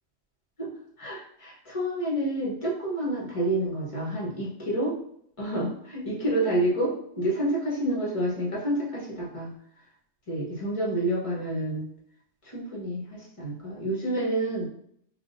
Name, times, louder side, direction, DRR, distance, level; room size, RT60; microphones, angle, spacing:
voice 1, 1.0-4.9 5.4-9.5 10.3-11.9 12.5-14.7, right 1 dB, 25° left, -4 dB, 1.2 m, -28 dB
5.5 x 2.6 x 2.6 m, 0.69 s
omnidirectional pair, 1.3 m